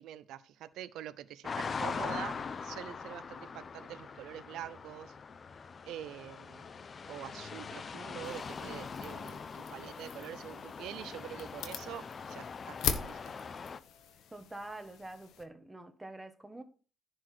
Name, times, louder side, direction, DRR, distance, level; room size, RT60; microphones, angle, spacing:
voice 1, 0.0-2.4 2.6-5.1 5.8-6.7 7.1-13.3, right 11 dB, 85° right, 0.6 m, -45 dB
sound 1, 1.4-13.8, left 5 dB, 45° left, 0.7 m, -42 dB
sound 2, 8.2-15.4, left 8 dB, 85° left, 1.2 m, -42 dB
voice 2, 14.3-16.6, right 2 dB, 15° right, 1.6 m, -46 dB
10.5 x 4.8 x 6.1 m
cardioid pair, 90°, 0 cm